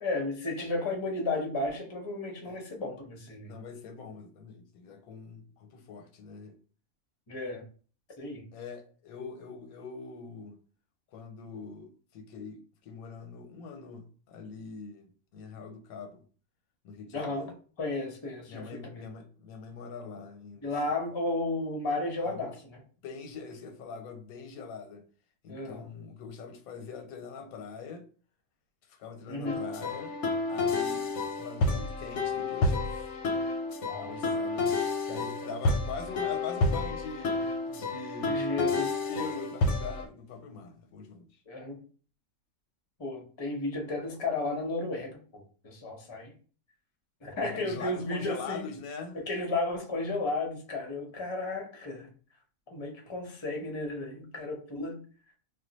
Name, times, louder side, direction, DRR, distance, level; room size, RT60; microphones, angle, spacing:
voice 1, 0.0-3.5 7.3-7.6 8.2-8.4 17.1-17.5 17.8-19.0 20.6-22.5 25.5-25.9 29.3-29.6 33.8-34.1 35.4-35.6 38.2-38.9 41.5-41.8 43.0-46.3 47.2-48.7 49.1-52.1 52.7-55.0, left 2 dB, 30° left, 0.5 m, -33 dB
voice 2, 3.5-6.5 8.5-10.6 11.1-16.2 16.8-17.5 18.5-20.7 22.2-22.5 23.0-25.0 25.4-28.0 28.9-30.2 30.5-31.1 31.4-33.1 34.0-34.7 35.0-38.4 39.1-41.3 47.4-49.2, left 5 dB, 90° left, 1.1 m, -43 dB
sound 1, 29.5-40.0, left 3 dB, 65° left, 0.8 m, -30 dB
2.4 x 2.2 x 3.9 m
omnidirectional pair, 1.5 m